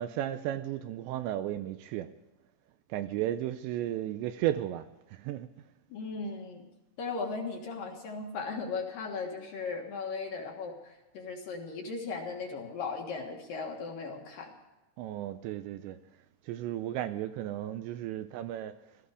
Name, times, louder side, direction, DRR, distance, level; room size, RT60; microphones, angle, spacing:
voice 1, 0.0-2.1 2.9-5.5 15.0-16.0 16.4-18.7, right 12 dB, 80° right, 2.6 m, -34 dB
voice 2, 5.9-6.7 7.0-14.5, left 4 dB, 60° left, 2.7 m, -37 dB
18.5 x 14.5 x 4.9 m
omnidirectional pair, 5.5 m